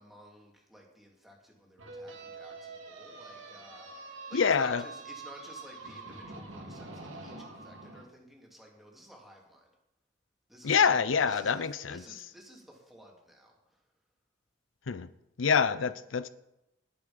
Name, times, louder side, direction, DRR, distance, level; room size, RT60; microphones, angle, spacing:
voice 1, 0.0-9.7 10.5-10.8 11.2-13.8, equal, ahead, 3.0 m, -53 dB
sound 1, 1.8-8.0, right 3 dB, 85° right, 2.7 m, -45 dB
voice 2, 4.3-4.9 10.6-12.0 14.9-15.1 15.4-16.3, left 6 dB, 85° left, 0.6 m, -26 dB
19.0 x 8.3 x 5.3 m
head